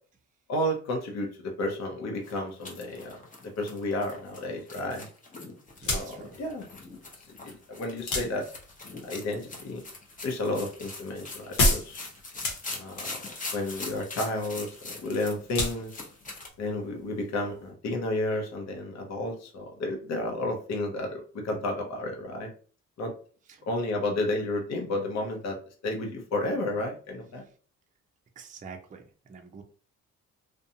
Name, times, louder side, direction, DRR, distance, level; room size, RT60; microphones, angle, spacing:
voice 1, 0.5-3.2 3.6-5.1 5.9-6.7 7.4-8.5 9.0-9.8 10.2-12.0 12.7-13.2 13.5-16.1 16.6-22.5 23.0-23.1 23.7-25.6 25.8-27.4, left 1 dB, 60° left, 1 dB, 0.8 m, -32 dB
sound 1, 2.2-16.5, left 3 dB, 25° left, 0.8 m, -42 dB
sound 2, 5.7-17.7, left 2 dB, 90° left, 1.0 m, -34 dB
voice 2, 5.8-6.4 23.5-23.7 28.4-29.6, right 5 dB, 25° right, 3 dB, 0.5 m, -46 dB
2.5 x 2.2 x 2.7 m, 0.41 s
cardioid pair, 90°, 30 cm